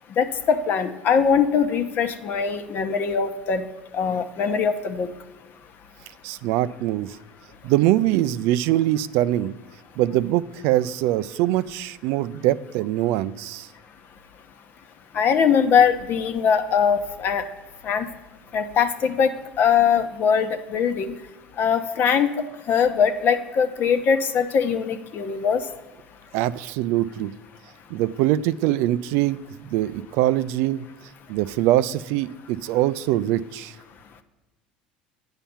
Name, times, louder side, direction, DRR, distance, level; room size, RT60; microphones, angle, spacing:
voice 1, 0.2-3.6 3.9-5.1 15.1-17.4 17.8-18.1 18.5-21.1 21.6-22.3 22.7-25.6, left 7 dB, 50° left, 8 dB, 0.9 m, -21 dB
voice 2, 6.2-7.2 7.6-9.5 10.0-13.7 26.3-27.3 27.9-29.4 29.7-30.8 31.3-33.7, right 14 dB, 65° right, 16 dB, 0.4 m, -23 dB
8.8 x 5.7 x 7.0 m, 1.1 s
hypercardioid pair, 75°, 4 cm